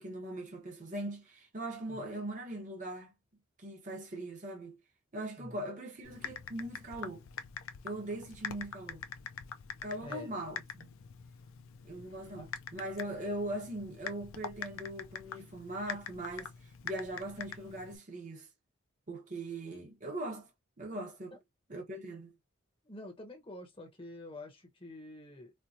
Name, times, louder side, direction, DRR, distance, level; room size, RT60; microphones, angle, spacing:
voice 1, 0.0-3.1 3.6-4.8 5.1-7.2 7.8-9.0 9.8-10.9 11.8-18.5 19.1-20.5 20.8-21.4 21.7-22.3, right 1 dB, 40° right, 0.9 m, -40 dB
Typing, 6.0-18.0, left 7 dB, 85° left, 0.5 m, -45 dB
voice 2, 22.9-25.5, left 1 dB, 25° left, 0.9 m, -47 dB
4.4 x 2.1 x 2.7 m
head